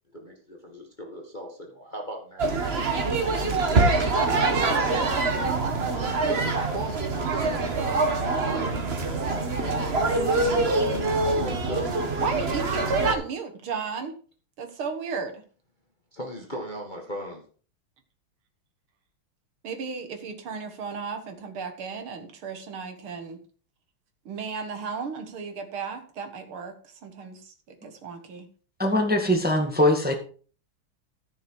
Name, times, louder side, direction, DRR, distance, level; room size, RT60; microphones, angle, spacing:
voice 1, 0.1-2.6 4.6-5.5 5.9-8.7 9.0-10.8 11.2-11.9 16.1-17.4, right 1 dB, 25° left, 0 dB, 1.7 m, -37 dB
sound 1, 2.4-13.1, right 3 dB, 35° right, 1.4 m, -25 dB
voice 2, 4.2-4.6 4.9-5.0 12.2-14.1 14.6-15.4 19.6-23.4 24.3-26.7 27.0-27.5 27.8-28.5, right 5 dB, 75° right, 6 dB, 2.5 m, -33 dB
voice 3, 28.8-30.1, left 1 dB, 5° right, 2 dB, 1.6 m, -22 dB
14.0 x 6.4 x 4.7 m, 0.40 s
omnidirectional pair, 2.4 m